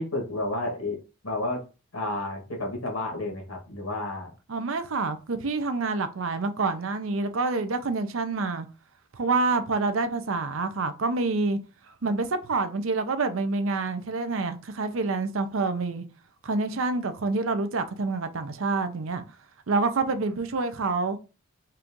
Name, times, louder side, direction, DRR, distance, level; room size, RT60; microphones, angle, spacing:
voice 1, 0.0-1.6 1.9-4.3, left 2 dB, 85° left, 1.7 m, -31 dB
voice 2, 4.5-8.7 9.1-11.6 12.0-16.0 16.4-19.2 19.7-21.2, right 3 dB, 70° right, 0.6 m, -27 dB
4.3 x 2.6 x 3.6 m
head